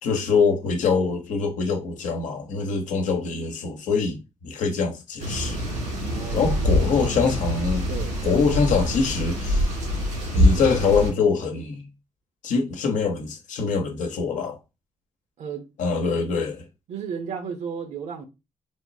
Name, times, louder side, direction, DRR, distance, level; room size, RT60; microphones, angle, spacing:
voice 1, 0.0-5.6 6.3-7.9 8.2-9.7 10.3-11.9 12.4-14.6 15.8-16.6, left 5 dB, 90° left, 0.8 m, -24 dB
sound 1, 5.2-11.1, left 1 dB, 90° right, 2.0 m, -24 dB
voice 2, 6.1-6.8 7.9-8.2 15.4-15.7 16.9-18.3, right 6 dB, 70° right, 0.6 m, -34 dB
3.5 x 3.0 x 2.6 m
cardioid pair, 120°, 13 cm